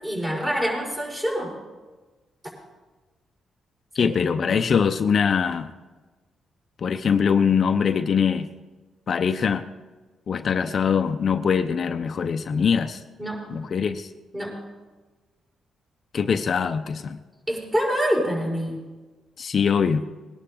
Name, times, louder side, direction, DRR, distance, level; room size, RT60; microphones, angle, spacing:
voice 1, 0.0-1.6 4.0-4.1 4.4-4.6 13.2-13.5 14.3-14.6 17.5-18.8, equal, 20° right, -2 dB, 5.3 m, -26 dB
voice 2, 3.9-5.7 6.8-8.5 9.1-9.7 10.3-13.0 13.5-14.1 16.1-17.2 19.4-20.0, left 6 dB, 55° left, 9 dB, 0.6 m, -22 dB
20.5 x 11.5 x 3.7 m, 1.3 s
cardioid pair, 85°, 0 cm